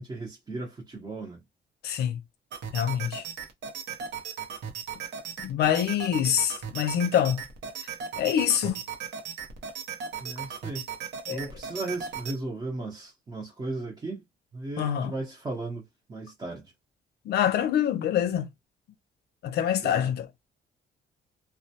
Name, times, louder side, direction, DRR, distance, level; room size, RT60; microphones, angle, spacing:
voice 1, 0.0-1.4 10.2-10.9 11.3-14.2 14.5-15.8 16.1-16.7 19.8-20.1, right 2 dB, 20° right, 0.7 m, -36 dB
voice 2, 1.8-2.2 2.7-3.2 5.4-7.4 8.2-8.8 11.3-11.4 14.8-15.1 17.3-18.5 19.4-20.3, left 10 dB, 70° left, 0.5 m, -25 dB
sound 1, 2.5-12.4, right 7 dB, 80° right, 0.7 m, -37 dB
2.2 x 2.0 x 2.7 m
cardioid pair, 125°, 18 cm